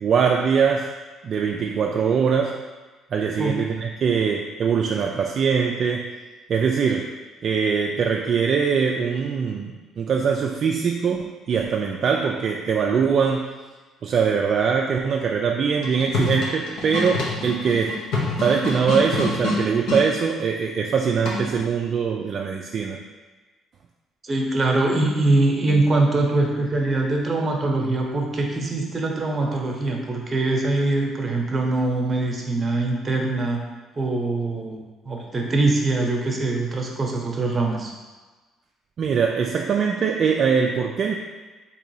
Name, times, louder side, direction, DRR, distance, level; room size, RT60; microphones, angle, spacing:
voice 1, 0.0-0.9 1.2-2.6 3.1-6.1 6.5-7.1 7.4-13.5 14.0-18.0 18.4-23.0 39.0-41.1, right 6 dB, 50° right, 1 dB, 0.3 m, -22 dB
sound 1, 15.7-20.1 21.2-21.7, left 3 dB, 80° left, 0.9 m, -27 dB
voice 2, 24.2-33.6 33.9-37.9, right 2 dB, 25° right, 0 dB, 0.9 m, -23 dB
3.8 x 3.0 x 4.7 m, 1.3 s
cardioid pair, 110°, 0 cm